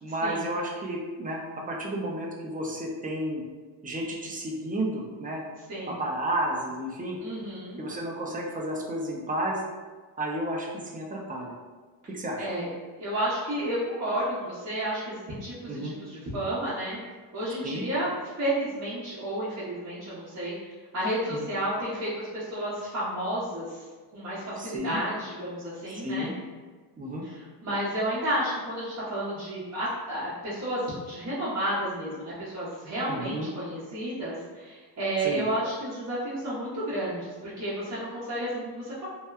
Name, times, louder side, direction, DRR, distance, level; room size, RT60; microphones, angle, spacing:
voice 1, 0.0-3.4 3.8-5.4 6.0-7.2 7.8-9.6 10.2-10.7 10.9-11.5 12.1-12.5 15.7-15.9 17.6-17.8 21.3-21.5 24.6-25.0 25.9-26.3 27.0-27.2 33.1-33.5 35.2-35.4, right 1 dB, 20° right, -1 dB, 0.4 m, -32 dB
voice 2, 5.7-6.0 7.2-7.8 12.4-17.0 17.3-18.1 18.4-23.8 24.1-26.3 27.2-39.0, right 1 dB, 35° right, -11 dB, 0.8 m, -31 dB
2.7 x 2.1 x 2.3 m, 1.4 s
cardioid pair, 105°, 47 cm